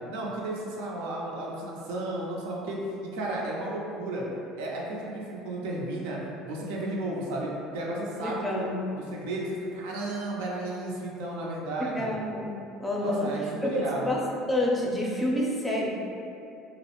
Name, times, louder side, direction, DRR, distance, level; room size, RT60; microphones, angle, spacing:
voice 1, 0.1-2.8 3.1-4.3 4.6-12.1 13.0-14.1, right 2 dB, 80° right, -3 dB, 0.4 m, -33 dB
voice 2, 8.2-8.7 11.8-12.5 12.8-13.3 13.6-14.2 14.5-15.9, left 1 dB, 10° left, -3 dB, 0.5 m, -28 dB
2.3 x 2.0 x 2.9 m, 2.7 s
supercardioid pair, 90°, 0 cm